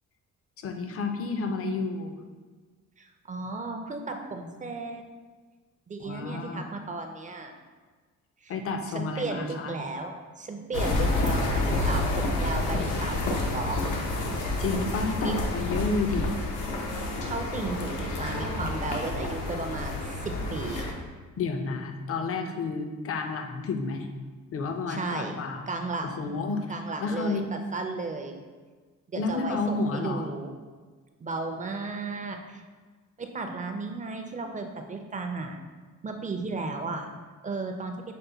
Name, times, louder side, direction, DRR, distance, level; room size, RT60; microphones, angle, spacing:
voice 1, 0.6-2.2 6.0-6.7 8.5-9.8 14.6-16.3 21.4-24.1 24.5-25.7 26.0-26.7 27.0-27.5 29.2-30.3, left 3 dB, 50° left, 5 dB, 0.6 m, -30 dB
voice 2, 3.0-5.0 5.9-7.5 8.4-8.5 8.9-13.8 15.2-15.4 17.2-20.9 24.9-25.4 25.7-26.3 26.7-27.4 27.7-28.3 29.1-30.5 31.2-32.6 33.2-35.6 36.0-37.1 37.4-37.9, right 3 dB, 25° right, 4 dB, 0.4 m, -34 dB
sound 1, 10.7-20.9, left 2 dB, 85° left, 0.8 m, -29 dB
5.5 x 2.1 x 3.8 m, 1.4 s
cardioid pair, 90°, 30 cm